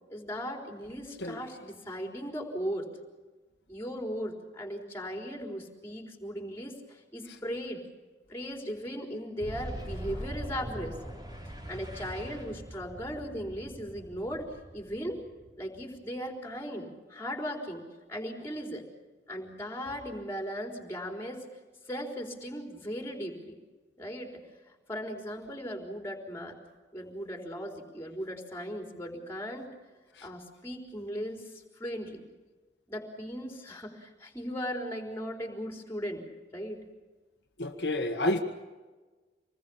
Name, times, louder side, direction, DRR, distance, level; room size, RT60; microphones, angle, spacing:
voice 1, 0.1-2.9 3.7-7.8 8.3-11.0 11.7-15.2 15.6-17.8 18.1-18.9 19.3-21.4 21.8-23.5 24.0-26.6 26.9-29.7 30.2-32.2 32.9-36.2 36.5-36.8, equal, 15° left, 2 dB, 4.0 m, -37 dB
Boom, 9.4-15.9, right 1 dB, 20° right, 4.0 m, -42 dB
voice 2, 37.6-38.4, left 1 dB, 70° left, 3 dB, 1.6 m, -29 dB
26.5 x 20.5 x 7.1 m, 1.3 s
head